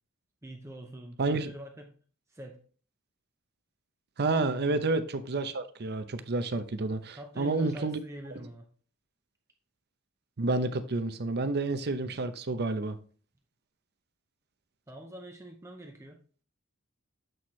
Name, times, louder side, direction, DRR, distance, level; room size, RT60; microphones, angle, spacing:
voice 1, 0.4-2.0 2.3-2.6 4.5-4.8 7.1-8.7 14.9-16.2, right 1 dB, 15° right, 0.7 m, -45 dB
voice 2, 1.2-1.5 4.2-8.0 10.4-13.0, right 3 dB, 50° right, 0.7 m, -29 dB
7.8 x 4.4 x 3.1 m
head